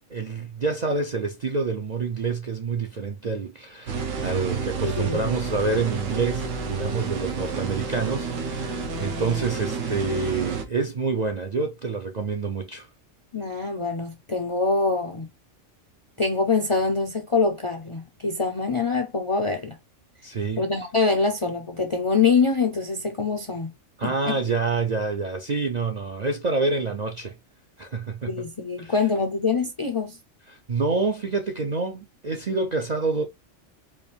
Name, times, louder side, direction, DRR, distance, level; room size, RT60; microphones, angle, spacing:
voice 1, 0.1-12.9 20.2-20.6 24.0-27.3 27.8-28.4 28.8-29.0 30.5-33.2, right 4 dB, 55° right, 0.5 m, -27 dB
sound 1, 3.9-10.6, right 4 dB, 75° right, 1.1 m, -30 dB
voice 2, 4.8-5.2 13.3-15.3 16.2-19.8 20.6-23.7 24.0-24.4 28.3-30.2, left 4 dB, 40° left, 0.4 m, -24 dB
4.9 x 2.4 x 3.3 m
omnidirectional pair, 1.3 m